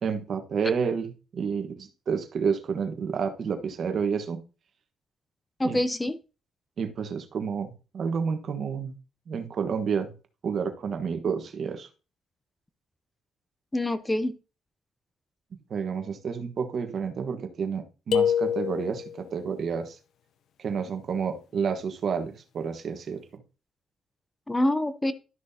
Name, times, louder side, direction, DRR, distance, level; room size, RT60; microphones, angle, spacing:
voice 1, 0.0-4.4 5.6-5.8 6.8-8.9 9.3-10.1 10.4-11.9 15.7-20.0 20.6-23.4, right 6 dB, 55° right, 7 dB, 1.3 m, -30 dB
voice 2, 5.6-6.2 13.7-14.3 24.5-25.1, left 1 dB, 15° left, 12 dB, 0.7 m, -25 dB
sound 1, 18.1-19.2, left 8 dB, 70° left, 0.7 m, -25 dB
12.5 x 6.2 x 2.8 m, 0.33 s
cardioid pair, 90°, 0 cm